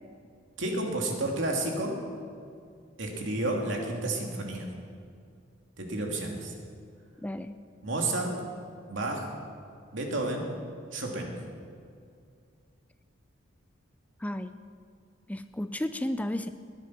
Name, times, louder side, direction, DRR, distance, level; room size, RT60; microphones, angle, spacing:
voice 1, 0.6-2.0 3.0-4.7 5.8-6.5 7.8-8.4 8.9-9.3 9.9-10.5 10.9-11.4, right 2 dB, 70° right, 0 dB, 2.8 m, -31 dB
voice 2, 7.2-7.6 14.2-14.5 15.3-16.5, left 1 dB, 10° left, 10 dB, 0.4 m, -32 dB
21.0 x 10.5 x 6.0 m, 2.3 s
head